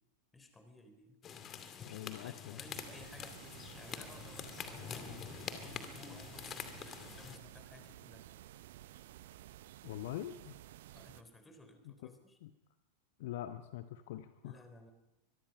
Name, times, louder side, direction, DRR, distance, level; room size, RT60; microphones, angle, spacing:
voice 1, 0.3-1.2 2.2-3.4 3.7-8.2 10.9-12.4 14.4-14.9, left 2 dB, 10° left, 8 dB, 4.0 m, -56 dB
sound 1, 1.2-7.4, left 7 dB, 25° left, 2.4 m, -46 dB
voice 2, 1.8-2.6 9.8-10.5 12.0-12.1 12.4-12.5 13.2-14.6, left 12 dB, 55° left, 10 dB, 1.1 m, -44 dB
sound 2, 2.7-11.2, right 13 dB, 55° right, 0.9 m, -54 dB
24.5 x 22.5 x 5.5 m, 0.93 s
figure-of-eight pair, 90°, 0 cm